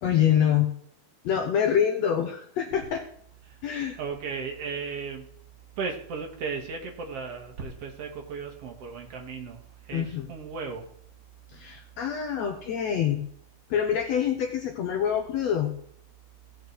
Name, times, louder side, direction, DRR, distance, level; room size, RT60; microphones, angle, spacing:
voice 1, 0.0-0.7 1.2-3.0 3.6-4.0 9.9-10.3 11.5-13.2 13.7-15.7, left 9 dB, 65° left, 5 dB, 1.8 m, -25 dB
voice 2, 4.0-5.3 5.8-10.9, right 5 dB, 50° right, 2 dB, 2.6 m, -35 dB
17.0 x 6.7 x 4.7 m, 0.67 s
omnidirectional pair, 3.8 m